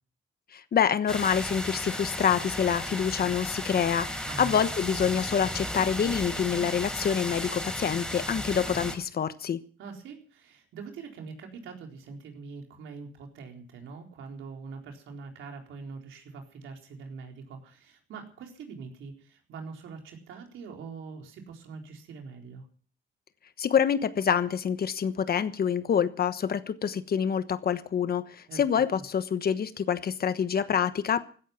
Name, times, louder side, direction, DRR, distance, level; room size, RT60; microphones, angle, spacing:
voice 1, 0.5-9.6 23.6-31.2, left 8 dB, 50° left, 1.2 m, -26 dB
sound 1, 1.1-8.9, equal, 5° left, 4.7 m, -34 dB
voice 2, 9.8-22.7 28.5-28.6, right 5 dB, 80° right, 4.2 m, -43 dB
16.0 x 14.0 x 5.9 m
cardioid pair, 90°, 20 cm